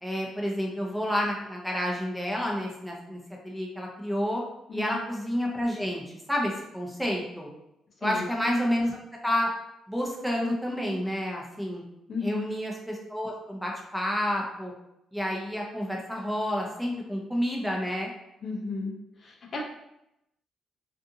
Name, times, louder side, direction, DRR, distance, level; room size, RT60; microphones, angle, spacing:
voice 1, 0.0-4.4 4.7-6.0 6.3-7.5 8.0-9.5 9.9-11.8 12.2-14.7 15.1-18.1, equal, ahead, -1 dB, 0.7 m, -30 dB
voice 2, 12.1-12.5 18.4-18.9 19.2-19.6, left 4 dB, 50° left, -1 dB, 0.6 m, -34 dB
2.5 x 2.5 x 2.6 m, 0.84 s
cardioid pair, 90°, 0 cm